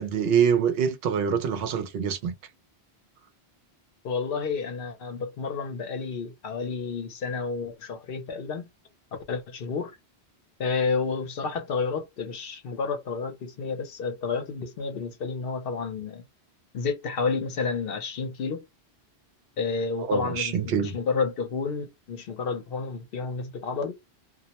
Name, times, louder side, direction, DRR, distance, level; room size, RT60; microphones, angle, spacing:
voice 1, 0.0-2.3 20.1-21.0, right 7 dB, 70° right, 0.8 m, -25 dB
voice 2, 4.0-8.7 9.1-10.0 10.6-16.3 16.7-18.6 19.6-23.9, left 5 dB, 65° left, 0.8 m, -30 dB
2.3 x 2.1 x 2.8 m
omnidirectional pair, 1.1 m